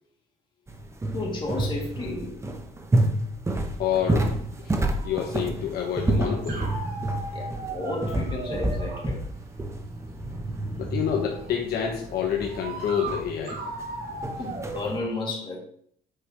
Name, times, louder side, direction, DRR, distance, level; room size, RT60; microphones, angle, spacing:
sound 1, 0.7-15.0, right 1 dB, 15° right, 0.9 m, -29 dB
voice 1, 1.1-2.3 7.3-9.2 14.4-15.6, left 2 dB, 30° left, -2 dB, 2.4 m, -32 dB
voice 2, 3.8-4.7 5.0-6.7 10.8-13.6, left 8 dB, 65° left, 1 dB, 1.2 m, -28 dB
sound 2, 4.4-14.8, right 2 dB, 65° right, 2.2 m, -38 dB
8.1 x 5.2 x 3.0 m, 0.64 s
cardioid pair, 110°, 17 cm